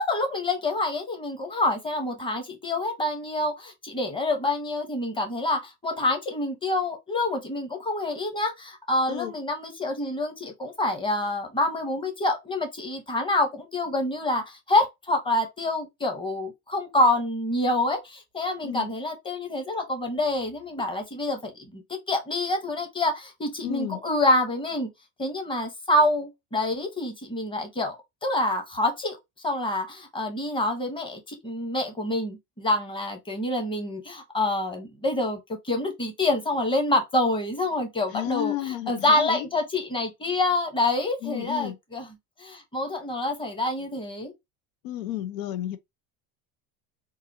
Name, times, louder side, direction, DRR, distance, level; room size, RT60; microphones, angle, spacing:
voice 1, 0.1-21.8 22.1-24.9 25.2-28.0 28.2-29.2 29.4-38.5 38.9-42.1 42.4-44.3, left 2 dB, 15° left, 1.0 m, -27 dB
voice 2, 23.6-24.0 38.1-39.5 41.2-41.8 44.8-45.8, left 13 dB, 85° left, 0.7 m, -32 dB
3.9 x 2.6 x 2.7 m
supercardioid pair, 135°, 39 cm